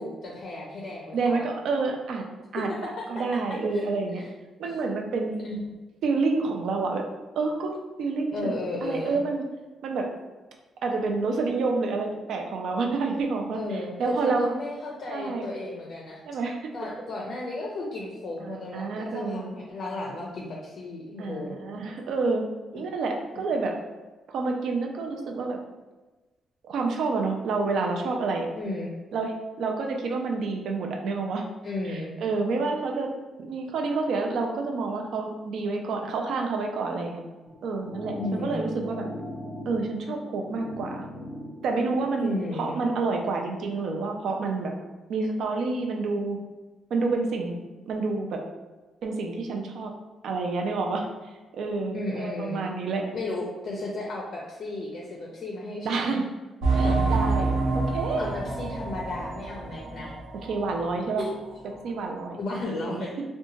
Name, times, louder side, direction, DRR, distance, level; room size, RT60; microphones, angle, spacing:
voice 1, 0.0-1.4 3.0-3.1 3.7-3.8 4.2-4.3 5.4-5.8 8.3-9.2 13.5-16.2 16.7-21.7 22.7-22.8 28.6-28.9 31.6-32.1 38.2-38.7 42.2-42.8 51.9-52.6 53.1-56.1 56.8-57.0 58.2-60.1 60.4-60.5 61.2-61.3 62.4-63.1, left 2 dB, 45° left, -2 dB, 0.4 m, -34 dB
voice 2, 1.1-2.3 2.5-4.2 4.6-5.4 6.0-7.0 7.4-7.7 8.0-8.5 8.8-9.4 9.8-10.1 10.8-14.5 15.1-15.5 16.3-16.6 18.5-19.5 21.2-22.4 22.7-23.7 24.3-25.6 26.6-28.5 29.1-31.4 31.8-33.1 33.4-37.2 37.6-39.1 39.7-41.0 41.6-44.7 45.1-46.4 46.9-47.6 47.9-48.4 49.0-49.9 50.2-51.1 51.5-53.1 55.8-56.2 56.7-58.3 60.5-61.2 61.8-62.4 62.6-63.1, right 3 dB, 65° right, 2 dB, 0.4 m, -28 dB
sound 1, 37.5-42.4, equal, 30° right, 0.7 m, -40 dB
sound 2, 56.6-60.9 61.2-61.3 61.9-62.0, right 3 dB, 85° right, 0.7 m, -27 dB
2.7 x 2.2 x 2.8 m, 1.2 s
cardioid pair, 165°, 0 cm